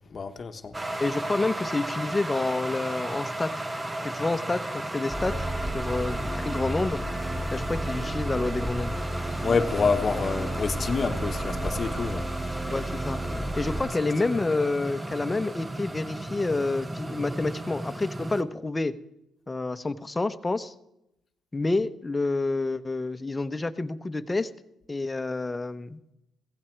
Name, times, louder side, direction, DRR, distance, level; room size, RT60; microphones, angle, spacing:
voice 1, 0.1-0.7 9.4-12.5, left 5 dB, 40° left, 1.1 m, -27 dB
sound 1, 0.7-18.4, right 1 dB, 15° right, 1.0 m, -34 dB
voice 2, 1.0-3.6 4.0-5.5 5.7-7.0 7.5-8.9 12.7-13.2 13.6-18.9 19.5-20.7 21.5-24.5 24.9-26.1, left 3 dB, 20° left, 1.0 m, -28 dB
sound 2, 5.1-13.8, right 1 dB, ahead, 2.8 m, -32 dB
16.5 x 15.0 x 4.6 m
cardioid pair, 90°, 0 cm